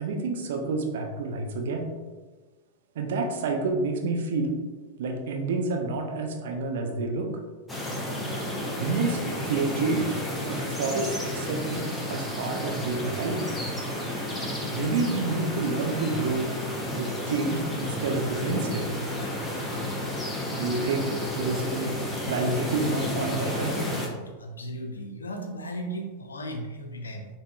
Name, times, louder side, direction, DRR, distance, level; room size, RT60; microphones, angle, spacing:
voice 1, 0.0-1.9 3.0-4.6 5.0-7.3 8.8-11.8 12.1-13.5 14.7-16.5 16.9-18.9 20.5-22.0 22.2-23.8, right 3 dB, 55° right, 2 dB, 0.4 m, -29 dB
sound 1, 7.7-24.1, left 1 dB, 10° left, 0.5 m, -31 dB
voice 2, 24.4-27.3, right 1 dB, 75° left, 3 dB, 0.4 m, -36 dB
3.5 x 2.0 x 2.3 m, 1.3 s
figure-of-eight pair, 90°, 0 cm